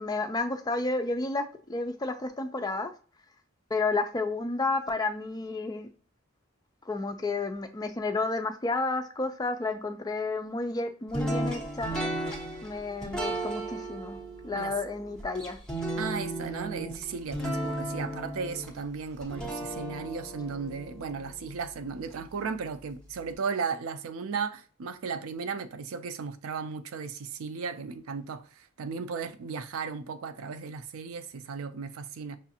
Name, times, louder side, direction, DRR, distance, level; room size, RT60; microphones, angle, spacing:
voice 1, 0.0-2.9 3.7-5.9 6.9-12.1 12.6-14.2 14.4-15.6, left 3 dB, 20° left, 0.4 m, -31 dB
sound 1, 11.1-22.2, right 1 dB, 5° left, 1.1 m, -35 dB
voice 2, 15.9-32.4, right 5 dB, 85° right, 0.4 m, -35 dB
6.0 x 2.4 x 2.8 m
head